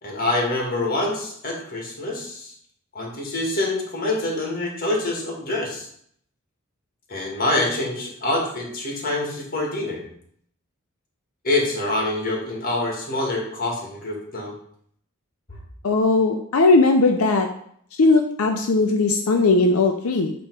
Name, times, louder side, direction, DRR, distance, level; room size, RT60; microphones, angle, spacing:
voice 1, 0.0-2.5 2.9-5.9 7.1-10.0 11.4-14.5, left 2 dB, 45° left, -1 dB, 1.8 m, -26 dB
voice 2, 15.8-17.5 18.0-20.3, left 3 dB, 85° left, 4 dB, 0.6 m, -18 dB
8.5 x 3.1 x 4.6 m, 0.66 s
head